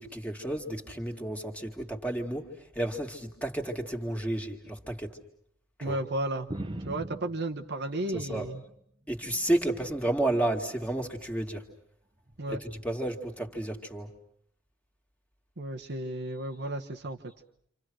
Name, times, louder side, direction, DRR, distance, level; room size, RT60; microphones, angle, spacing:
voice 1, 0.0-2.5 2.8-5.2 5.8-6.0 8.1-8.5 9.1-11.6 12.5-14.1, right 1 dB, 5° left, 3 dB, 2.3 m, -31 dB
voice 2, 5.8-6.5 6.9-8.6 12.4-12.6 15.6-17.2, right 1 dB, 50° right, 4 dB, 1.2 m, -33 dB
sound 1, 6.5-8.7 9.1-10.0 10.9-11.3 12.3-12.4, right 1 dB, 25° right, 1.1 m, -42 dB
29.0 x 27.0 x 6.3 m, 0.68 s
head